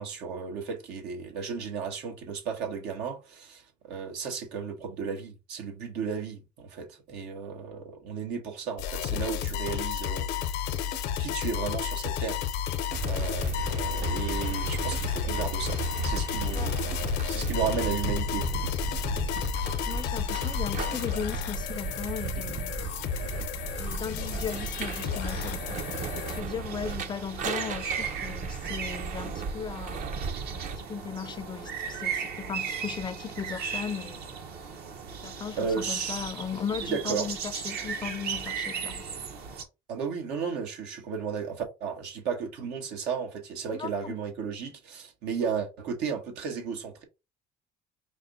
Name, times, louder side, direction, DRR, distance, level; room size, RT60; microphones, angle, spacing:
voice 1, 0.0-10.7 11.2-12.4 13.1-18.5 19.0-19.2 35.6-36.3 36.8-37.3 39.9-47.0, right 6 dB, 90° right, 1.3 m, -34 dB
sound 1, 8.8-26.4, left 9 dB, 90° left, 0.7 m, -32 dB
sound 2, 12.9-30.8, right 5 dB, 45° right, 0.6 m, -35 dB
voice 2, 19.6-22.8 23.8-25.8 26.3-30.2 30.5-34.3 35.2-39.1 43.7-44.2, left 7 dB, 25° left, 0.4 m, -37 dB
sound 3, 24.5-39.6, right 6 dB, 70° right, 1.1 m, -37 dB
5.3 x 2.1 x 3.9 m
cardioid pair, 110°, 17 cm